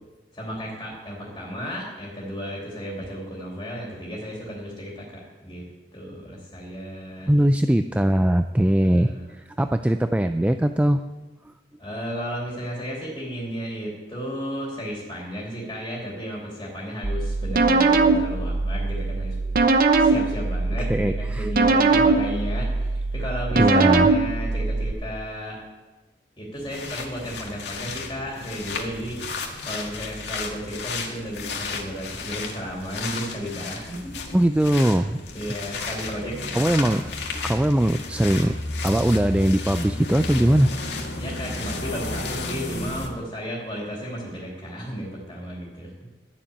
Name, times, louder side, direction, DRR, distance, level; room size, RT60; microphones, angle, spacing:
voice 1, 0.3-5.6 5.9-7.3 8.8-9.2 11.8-19.4 20.0-25.6 26.4-29.2 29.6-34.1 35.3-37.0 41.2-46.1, equal, 25° left, -3 dB, 3.1 m, -34 dB
voice 2, 7.3-11.0 20.9-21.5 23.6-24.1 34.3-35.2 36.5-37.0 37.3-38.6 38.8-40.7, right 1 dB, 10° right, 8 dB, 0.3 m, -21 dB
sound 1, 17.0-24.9, right 3 dB, 55° right, 0.9 m, -21 dB
sound 2, 26.6-43.1, left 3 dB, 75° left, 2.0 m, -33 dB
13.0 x 7.4 x 8.6 m, 1.2 s
head